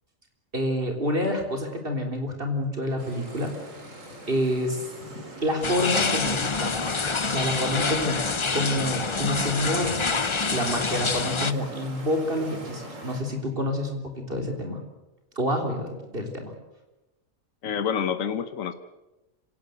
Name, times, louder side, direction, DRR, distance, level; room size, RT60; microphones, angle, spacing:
voice 1, 0.5-3.6 4.3-4.9 5.4-8.2 8.5-14.8 15.4-16.5, equal, 45° right, 3 dB, 3.8 m, -28 dB
sound 1, 3.0-13.2, right 1 dB, 75° right, 4.1 m, -42 dB
sound 2, 5.6-11.5, left 4 dB, 30° left, 0.7 m, -27 dB
voice 2, 17.6-18.7, left 7 dB, 80° left, 10 dB, 1.4 m, -27 dB
26.0 x 17.5 x 7.9 m, 1.0 s
omnidirectional pair, 1.4 m